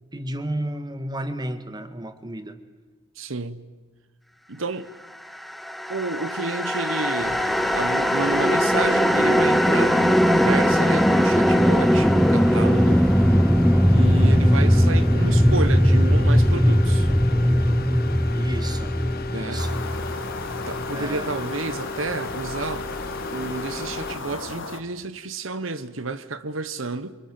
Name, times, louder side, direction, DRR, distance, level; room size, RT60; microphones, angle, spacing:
voice 1, 0.1-2.6 18.3-19.0 19.3-19.9 20.9-21.3, right 1 dB, 20° right, 1.8 m, -32 dB
voice 2, 3.2-3.6 4.5-4.9 5.9-7.4 7.7-13.0 13.9-17.1 19.3-19.7 20.7-22.9 23.3-27.2, right 3 dB, 70° right, 1.3 m, -30 dB
sound 1, 5.6-20.8, equal, ahead, 0.8 m, -19 dB
sound 2, 7.2-24.1, left 3 dB, 50° left, 1.6 m, -35 dB
sound 3, 19.6-24.8, left 3 dB, 65° left, 2.0 m, -35 dB
27.5 x 26.0 x 7.8 m
head